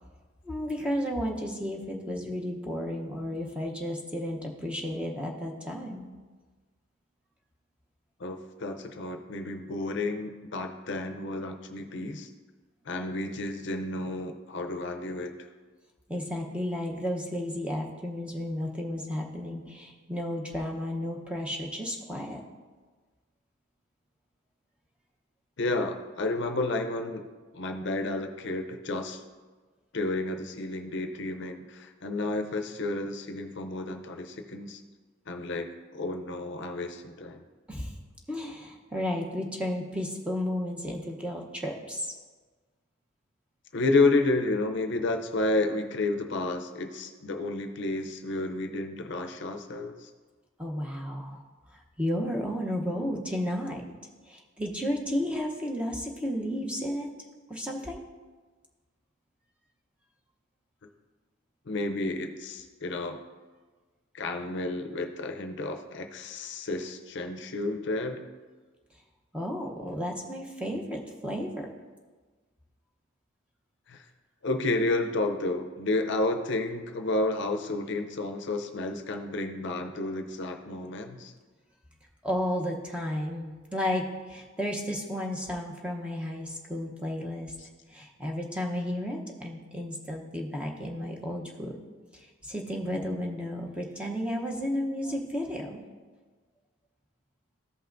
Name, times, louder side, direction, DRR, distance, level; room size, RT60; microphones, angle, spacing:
voice 1, 0.4-6.1 16.1-22.4 37.7-38.0 38.3-42.1 50.6-51.4 51.7-53.8 54.3-57.1 57.5-58.0 69.3-71.7 82.2-87.5 87.9-91.8 92.1-95.8, equal, 5° right, 0 dB, 0.8 m, -33 dB
voice 2, 8.2-12.3 12.9-15.3 25.6-27.2 27.5-29.2 29.9-34.8 35.3-37.4 43.7-50.1 61.7-63.2 64.1-68.2 73.9-74.0 74.4-81.3, left 2 dB, 60° left, 6 dB, 0.6 m, -31 dB
14.0 x 5.6 x 2.6 m, 1.4 s
head